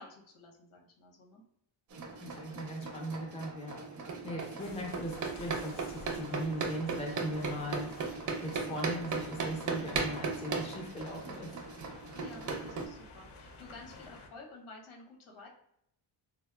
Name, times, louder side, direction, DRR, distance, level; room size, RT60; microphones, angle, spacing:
voice 1, 0.0-1.4 12.1-15.5, left 2 dB, 90° left, -1 dB, 1.0 m, -52 dB
sound 1, 1.9-12.9, right 4 dB, 40° right, 0.4 m, -37 dB
voice 2, 2.2-7.9 8.4-11.5, equal, 15° left, -1 dB, 0.5 m, -39 dB
sound 2, 4.6-14.3, left 2 dB, 55° left, 0.6 m, -52 dB
4.3 x 2.0 x 2.2 m, 0.76 s
wide cardioid pair, 150°, 48 cm